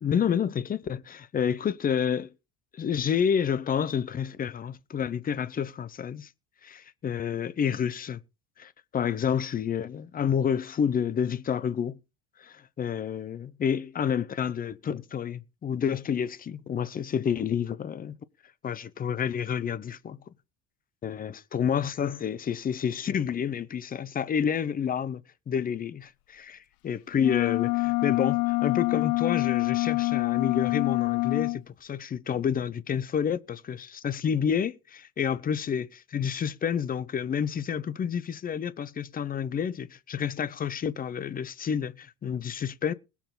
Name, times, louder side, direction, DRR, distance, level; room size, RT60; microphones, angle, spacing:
voice 1, 0.0-2.3 2.8-6.3 6.6-8.2 8.6-12.0 12.4-18.1 18.6-20.2 21.0-42.9, left 8 dB, 25° left, 0.7 m, -29 dB
sound 1, 27.2-31.6, left 25 dB, 80° left, 0.6 m, -26 dB
21.0 x 7.2 x 3.9 m
cardioid pair, 165°, 38 cm